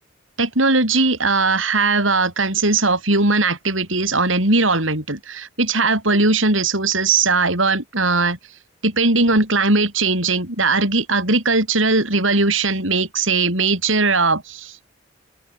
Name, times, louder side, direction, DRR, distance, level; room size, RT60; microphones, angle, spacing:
voice 1, 0.4-8.4 8.8-14.8, right 3 dB, 75° right, 7.5 m, -19 dB
open air
head